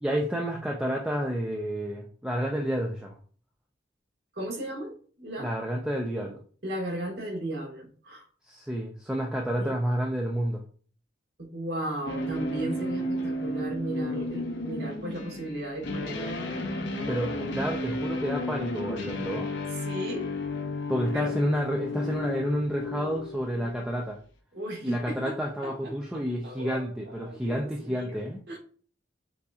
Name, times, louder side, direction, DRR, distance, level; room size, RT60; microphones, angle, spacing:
voice 1, 0.0-3.1 5.4-6.4 8.5-10.6 17.1-19.5 20.9-24.2 24.8-28.4, equal, 5° right, -1 dB, 0.4 m, -30 dB
voice 2, 4.3-5.5 6.6-8.3 9.6-9.8 11.4-16.3 19.7-20.3 21.1-21.3 24.5-25.4 25.6-28.6, right 1 dB, 60° right, -1 dB, 1.5 m, -36 dB
sound 1, 12.0-24.0, left 1 dB, 65° left, 0.7 m, -33 dB
6.7 x 2.7 x 2.4 m, 0.43 s
head